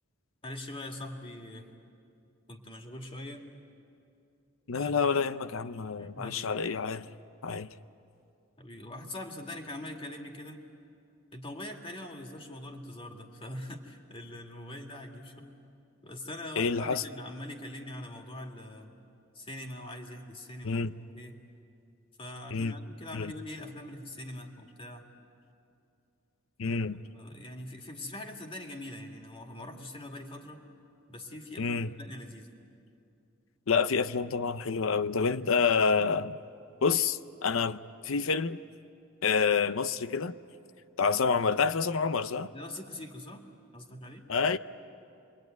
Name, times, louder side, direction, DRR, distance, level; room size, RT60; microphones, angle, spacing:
voice 1, 0.4-1.7 2.5-3.5 4.7-5.1 6.0-6.6 8.6-10.6 11.3-15.6 16.0-19.0 19.3-20.8 21.1-21.4 22.2-25.1 26.6-26.8 27.1-30.7 31.1-32.5 42.5-43.5 43.7-44.2, left 1 dB, 25° left, 3 dB, 2.2 m, -43 dB
voice 2, 4.7-7.1 7.4-7.7 16.6-17.0 20.6-20.9 22.5-22.7 23.1-23.3 26.6-27.0 31.6-31.9 33.7-36.4 36.8-37.8 38.0-38.6 39.2-40.4 41.0-42.5 44.3-44.6, left 5 dB, 70° left, 13 dB, 0.7 m, -28 dB
28.0 x 22.5 x 9.2 m, 2.5 s
head